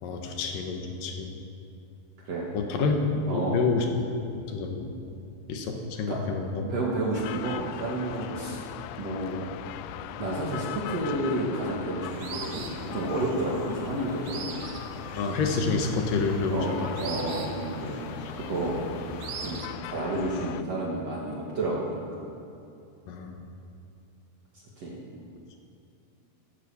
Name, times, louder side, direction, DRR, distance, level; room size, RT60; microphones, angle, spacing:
voice 1, 0.0-1.3 2.5-3.9 4.3-4.9 5.5-6.6 15.1-16.9 23.1-23.3, left 4 dB, 65° left, 3 dB, 2.9 m, -28 dB
voice 2, 2.2-2.9 3.3-3.6 6.1-6.2 6.6-8.6 9.0-9.4 10.2-12.7 12.9-14.5 16.5-18.0 18.3-18.9 19.4-22.3 24.8-25.0, right 1 dB, 50° right, -4 dB, 2.5 m, -31 dB
sound 1, 7.1-20.6, left 12 dB, 85° left, 2.1 m, -39 dB
sound 2, 12.1-19.7, right 5 dB, 80° right, 3.0 m, -42 dB
15.5 x 12.0 x 7.0 m, 2.7 s
omnidirectional pair, 4.5 m